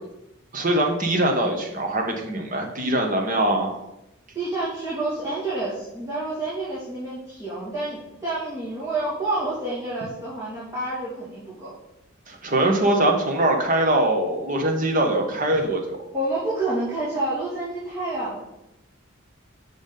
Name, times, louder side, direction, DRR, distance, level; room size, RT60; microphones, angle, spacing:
voice 1, 0.5-3.7 12.3-16.0, right 1 dB, 40° right, 2 dB, 1.2 m, -22 dB
voice 2, 4.3-11.7 16.1-18.4, right 2 dB, 15° right, -10 dB, 2.2 m, -28 dB
6.0 x 5.6 x 5.3 m, 0.88 s
head